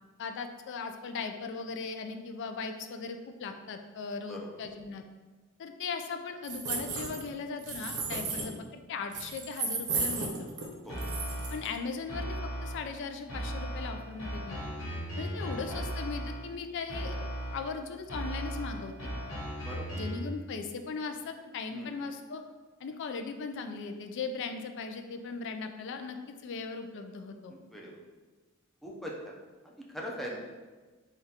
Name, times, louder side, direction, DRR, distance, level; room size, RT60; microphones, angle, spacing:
voice 1, 0.2-5.0 5.6-10.5 11.5-14.6 15.2-19.1 19.9-22.4 22.8-27.5, left 4 dB, 60° left, 6 dB, 0.4 m, -38 dB
sound 1, 6.4-7.3 7.6-8.5 9.1-10.7 11.0-11.7, right 4 dB, 55° right, 0.7 m, -34 dB
sound 2, 10.9-11.7 12.1-12.9 13.3-16.5 16.9-17.7 18.1-20.3, right 1 dB, 80° left, 1.3 m, -37 dB
voice 2, 15.3-15.8 19.7-19.9 21.7-22.0 27.5-28.0 28.8-29.3 29.6-30.4, equal, ahead, -3 dB, 0.5 m, -42 dB
3.5 x 2.3 x 4.2 m, 1.3 s
head